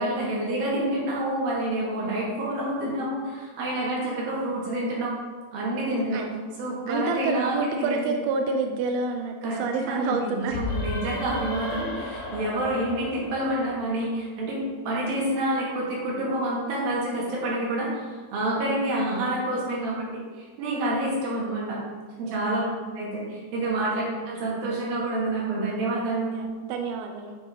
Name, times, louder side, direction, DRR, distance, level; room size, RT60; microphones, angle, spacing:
voice 1, 0.0-5.1 5.5-6.2 6.6-8.0 9.4-9.6 9.9-20.1 20.4-21.8 22.2-22.7 23.0-26.4, right 1 dB, 60° right, -5 dB, 3.9 m, -28 dB
voice 2, 2.0-2.5 5.9-6.3 6.9-10.5 22.2-22.8 24.0-24.2 26.3-27.4, right 4 dB, 80° right, 4 dB, 2.2 m, -29 dB
sound 1, 10.5-14.1, left 2 dB, 70° left, 3.2 m, -34 dB
8.5 x 7.6 x 3.9 m, 1.5 s
omnidirectional pair, 4.8 m